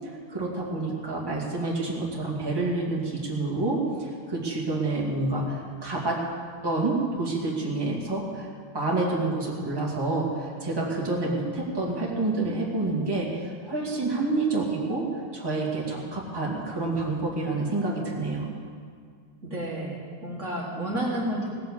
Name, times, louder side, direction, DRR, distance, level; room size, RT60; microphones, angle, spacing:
voice 1, 0.3-6.2 6.6-8.5 8.7-15.1 15.3-18.5, right 2 dB, 10° right, -4 dB, 2.1 m, -28 dB
voice 2, 19.4-21.5, right 1 dB, 35° right, -5 dB, 2.1 m, -31 dB
17.5 x 7.6 x 7.2 m, 2.1 s
omnidirectional pair, 2.3 m